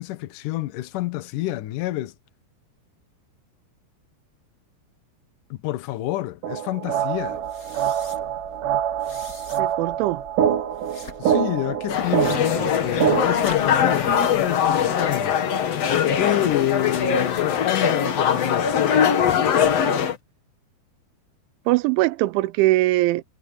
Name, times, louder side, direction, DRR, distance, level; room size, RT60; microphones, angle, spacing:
voice 1, 0.0-2.1 5.5-7.4 11.2-15.4 16.2-18.8, left 15 dB, 75° left, 1.9 m, -28 dB
sound 1, 6.4-13.4, right 9 dB, 65° right, 2.2 m, -25 dB
sound 2, 7.1-15.2, left 2 dB, 15° left, 6.8 m, -44 dB
voice 2, 9.6-10.2 21.7-23.2, right 18 dB, 85° right, 3.1 m, -21 dB
sound 3, 11.9-20.2, left 8 dB, 60° left, 1.7 m, -21 dB
omnidirectional pair, 5.4 m